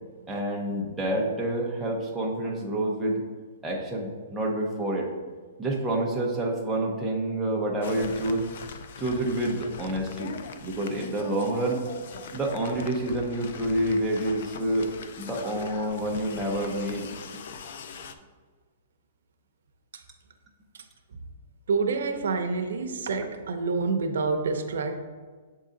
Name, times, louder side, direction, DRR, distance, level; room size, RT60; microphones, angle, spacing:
voice 1, 0.3-3.2 3.6-5.1 5.6-8.4 9.0-10.3 10.6-11.8 12.3-14.9 15.2-17.4, right 1 dB, 5° right, -4 dB, 0.6 m, -28 dB
sound 1, 7.8-18.1, left 5 dB, 50° left, 0.4 m, -41 dB
voice 2, 21.7-25.0, right 4 dB, 80° right, 6 dB, 0.7 m, -27 dB
7.3 x 3.8 x 3.8 m, 1.5 s
hypercardioid pair, 175°, 0 cm